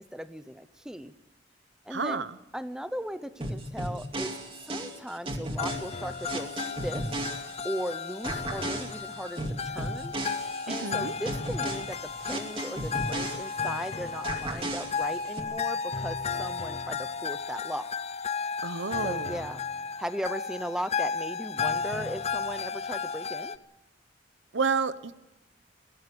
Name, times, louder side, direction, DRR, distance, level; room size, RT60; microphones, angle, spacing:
voice 1, 0.1-1.1 1.8-2.3 2.5-4.3 4.6-7.1 7.6-10.1 10.7-17.9 19.0-19.6 20.0-23.6, equal, 5° right, 12 dB, 0.8 m, -37 dB
voice 2, 1.9-2.4 10.7-11.1 18.6-19.3 24.5-25.1, right 5 dB, 90° right, 14 dB, 1.0 m, -30 dB
sound 1, 3.4-7.9 8.2-13.9 14.2-15.4, right 1 dB, 30° right, 2.5 m, -35 dB
sound 2, 5.6-23.6, left 5 dB, 35° left, 0.7 m, -34 dB
23.0 x 17.0 x 7.0 m, 0.98 s
head